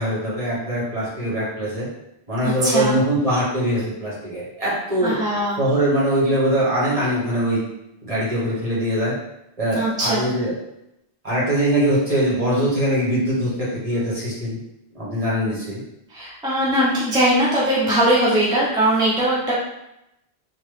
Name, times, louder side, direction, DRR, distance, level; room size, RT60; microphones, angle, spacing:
voice 1, 0.0-1.9 2.3-5.2 5.6-7.6 8.0-9.1 9.6-10.5 11.2-14.6 14.9-15.8, right 1 dB, 35° right, -8 dB, 1.1 m, -22 dB
voice 2, 2.4-3.0 5.0-5.6 9.7-10.3 16.1-19.5, right 1 dB, 5° right, -7 dB, 0.5 m, -20 dB
2.9 x 2.2 x 3.2 m, 0.85 s
omnidirectional pair, 1.1 m